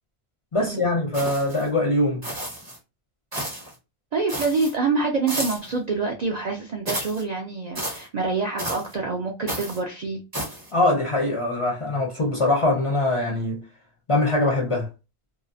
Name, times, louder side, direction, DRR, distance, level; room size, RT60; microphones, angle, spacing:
voice 1, 0.5-2.2 10.7-13.7 14.1-14.9, left 2 dB, 40° left, 0.5 m, -22 dB
sound 1, 1.1-1.7 2.2-2.8 3.3-3.7 4.3-4.7 5.3-5.7 6.9-7.2 7.8-8.1 8.6-8.9 9.5-9.8 10.3-10.7, right 1 dB, 25° right, 0.7 m, -32 dB
voice 2, 4.1-10.2, right 4 dB, 55° right, 0.4 m, -26 dB
2.7 x 2.0 x 2.6 m
omnidirectional pair, 1.1 m